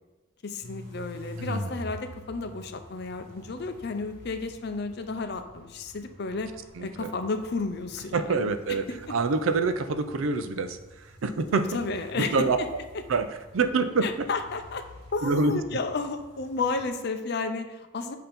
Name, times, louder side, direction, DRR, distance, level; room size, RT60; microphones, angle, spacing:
voice 1, 0.4-6.5 6.8-8.4 8.7-8.8 9.1-9.2 11.5-12.7 14.0-14.8 15.1-18.2, left 3 dB, 50° left, 8 dB, 0.5 m, -32 dB
sound 1, 0.6-16.9, left 1 dB, 50° right, 1.6 m, -45 dB
voice 2, 1.4-1.7 6.8-7.1 8.1-10.8 11.2-11.6 12.1-12.6 13.1-13.3 13.5-14.1 15.2-15.6, right 3 dB, 75° right, 9 dB, 0.5 m, -26 dB
7.8 x 2.8 x 5.1 m, 1.1 s
head